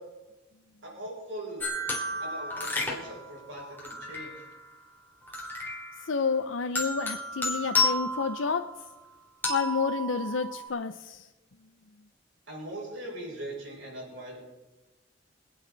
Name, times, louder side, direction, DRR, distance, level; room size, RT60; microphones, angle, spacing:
voice 1, 0.8-1.7 2.2-4.4 12.5-14.4, right 1 dB, 75° right, -3 dB, 6.7 m, -40 dB
sound 1, 1.6-4.7 5.3-6.3 6.7-8.9 9.4-10.7, left 2 dB, 10° left, 3.1 m, -32 dB
voice 2, 6.0-8.6 9.5-11.3, left 5 dB, 85° left, 6 dB, 0.6 m, -30 dB
27.0 x 9.5 x 4.0 m, 1.1 s
head